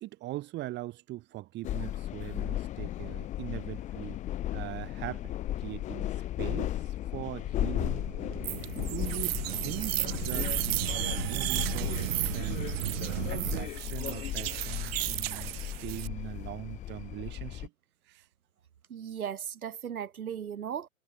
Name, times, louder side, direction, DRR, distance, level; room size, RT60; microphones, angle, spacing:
voice 1, 0.0-4.2 4.5-6.1 6.4-8.0 8.7-12.7 13.1-17.7 18.0-18.3, right 16 dB, 25° right, 1.9 m, -41 dB
sound 1, 1.6-17.7, left 13 dB, 15° left, 0.9 m, -35 dB
sound 2, 7.3-13.7, right 14 dB, 70° right, 0.9 m, -37 dB
sound 3, 8.4-16.1, right 17 dB, 45° right, 0.6 m, -35 dB
voice 2, 18.9-20.9, right 8 dB, 85° right, 4.1 m, -37 dB
hypercardioid pair, 140°, 42 cm